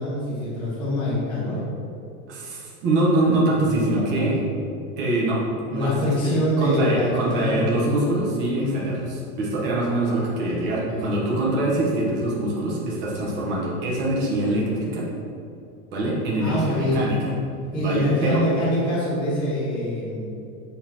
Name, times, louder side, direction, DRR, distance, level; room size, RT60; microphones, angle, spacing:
voice 1, 0.0-1.6 3.7-4.3 5.7-7.6 8.6-9.0 10.7-11.1 16.4-17.1 17.7-20.3, left 1 dB, 10° left, -10 dB, 1.2 m, -25 dB
voice 2, 2.3-4.4 5.0-5.4 5.7-6.0 6.2-15.1 15.9-17.3 17.8-18.4, right 1 dB, 25° right, -5 dB, 1.1 m, -24 dB
7.5 x 6.4 x 3.0 m, 2.6 s
supercardioid pair, 180°, 44 cm